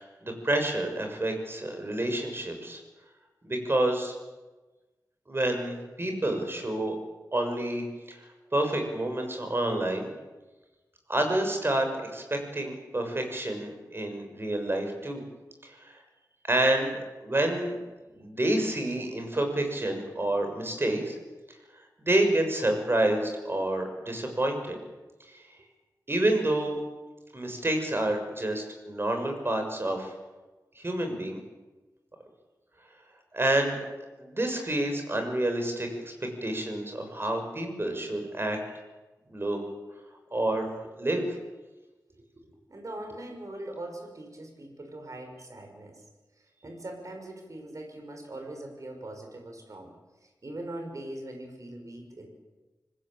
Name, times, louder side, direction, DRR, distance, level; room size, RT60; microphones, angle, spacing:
voice 1, 0.0-2.8 3.4-4.1 5.3-7.0 7.3-8.2 8.5-10.1 11.1-15.2 15.6-16.0 16.5-17.7 18.1-21.1 22.1-24.8 25.3-25.4 26.1-26.8 27.3-30.1 30.7-31.4 33.3-33.8 34.2-38.6 39.3-39.6 40.3-41.3, right 1 dB, 35° right, 5 dB, 6.7 m, -28 dB
voice 2, 42.5-46.0 46.6-49.9 50.4-52.3, right 1 dB, 50° right, 4 dB, 6.4 m, -41 dB
26.0 x 20.5 x 9.0 m, 1.2 s
wide cardioid pair, 80°, 7 cm